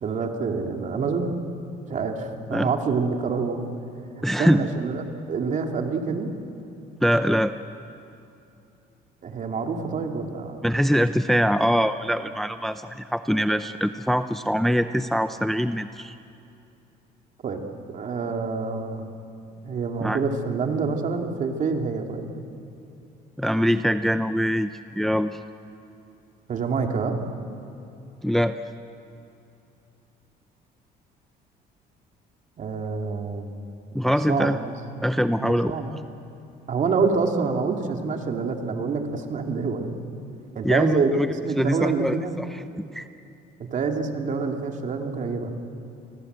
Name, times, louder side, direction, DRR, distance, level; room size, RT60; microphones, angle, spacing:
voice 1, 0.0-1.4 1.9-3.6 4.2-6.3 9.2-10.6 17.4-17.6 17.9-19.1 19.6-22.3 26.5-27.2 32.6-33.5 34.3-34.7 35.4-35.9 36.7-39.9 40.5-42.3 43.7-45.6, right 4 dB, 45° right, 3 dB, 2.7 m, -27 dB
voice 2, 4.2-4.7 7.0-7.5 10.6-16.2 20.0-20.2 23.4-25.4 28.2-28.6 33.9-34.6 35.0-35.8 40.6-41.3 41.6-42.6 42.9-43.0, equal, ahead, 10 dB, 0.6 m, -23 dB
28.5 x 20.0 x 8.1 m, 2.7 s
cardioid pair, 110°, 17 cm